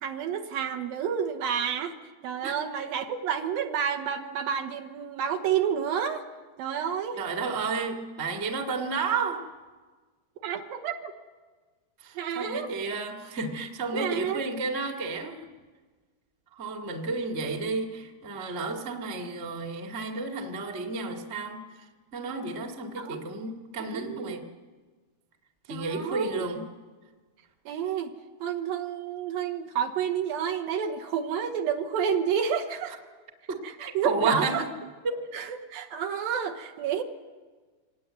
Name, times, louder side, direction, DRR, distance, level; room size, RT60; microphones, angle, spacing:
voice 1, 0.0-2.0 2.2-6.2 6.6-7.2 10.4-11.1 12.2-12.7 13.9-14.4 23.0-23.2 23.8-24.4 25.7-26.4 27.7-28.1 28.4-32.9 33.6-34.6 35.3-37.0, right 8 dB, 70° right, 6 dB, 2.6 m, -30 dB
voice 2, 2.4-2.8 7.1-9.5 12.0-15.6 16.5-21.6 22.1-24.4 25.7-26.7 33.5-34.7 35.0-35.2, right 4 dB, 30° right, 3 dB, 1.1 m, -32 dB
24.5 x 18.5 x 9.4 m, 1.4 s
omnidirectional pair, 4.6 m